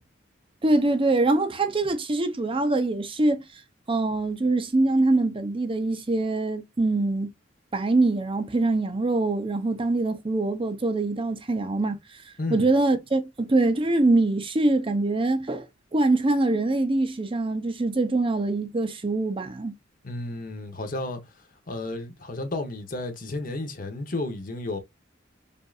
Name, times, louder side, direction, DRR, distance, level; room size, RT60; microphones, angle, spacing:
voice 1, 0.6-3.5 3.9-7.3 7.7-12.2 12.5-19.7, right 2 dB, 30° right, 0.6 m, -24 dB
voice 2, 12.4-12.7 20.0-21.2 21.7-24.8, left 2 dB, 50° left, 1.0 m, -32 dB
5.3 x 2.6 x 2.4 m
head